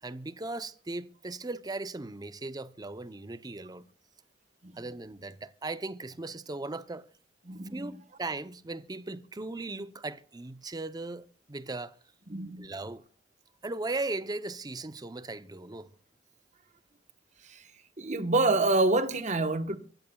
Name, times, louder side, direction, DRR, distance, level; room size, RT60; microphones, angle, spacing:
voice 1, 0.0-3.9 4.7-7.1 7.7-12.0 12.6-13.0 13.6-15.9, right 2 dB, 20° right, 0.6 m, -38 dB
voice 2, 7.5-7.9 12.3-12.7 17.4-17.7 18.0-19.8, right 2 dB, 40° right, 1.1 m, -27 dB
24.0 x 16.0 x 2.3 m
head